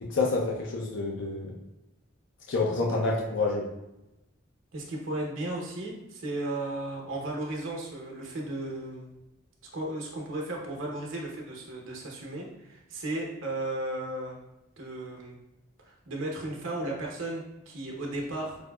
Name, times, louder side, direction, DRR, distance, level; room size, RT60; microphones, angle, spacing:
voice 1, 0.0-1.5 2.5-3.7, left 3 dB, 65° left, -2 dB, 0.5 m, -28 dB
voice 2, 4.7-9.1 9.7-14.4 14.8-15.4 15.8-18.6, right 1 dB, 80° right, -1 dB, 0.8 m, -35 dB
5.0 x 2.0 x 2.2 m, 0.94 s
head